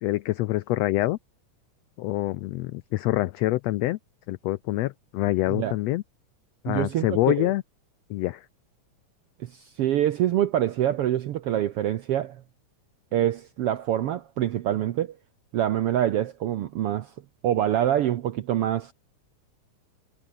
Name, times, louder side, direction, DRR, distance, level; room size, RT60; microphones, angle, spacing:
voice 1, 0.0-1.2 2.0-4.0 4.3-6.0 6.6-7.6 8.1-8.4, left 17 dB, 90° left, 1.4 m, -26 dB
voice 2, 6.7-7.5 9.4-12.4 13.1-15.2 15.5-17.1 17.4-18.9, right 11 dB, 75° right, 1.3 m, -25 dB
omnidirectional pair, 3.6 m